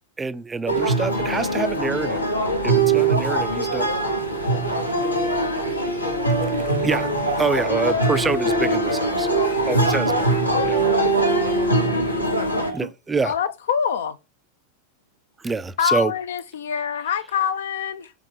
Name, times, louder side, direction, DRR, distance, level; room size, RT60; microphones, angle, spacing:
voice 1, 0.2-2.2 2.6-3.9 6.8-7.1 7.4-9.3 9.7-10.1 10.7-10.8 12.7-13.3 15.4-16.1, right 4 dB, 15° right, 0.3 m, -26 dB
sound 1, 0.7-12.7, right 2 dB, 85° left, 0.8 m, -22 dB
voice 2, 3.1-7.6 9.8-12.9, right 1 dB, 85° right, 0.7 m, -32 dB
voice 3, 13.2-14.2 15.8-18.1, left 7 dB, 60° left, 0.4 m, -25 dB
3.9 x 3.7 x 3.2 m
figure-of-eight pair, 90°, 0 cm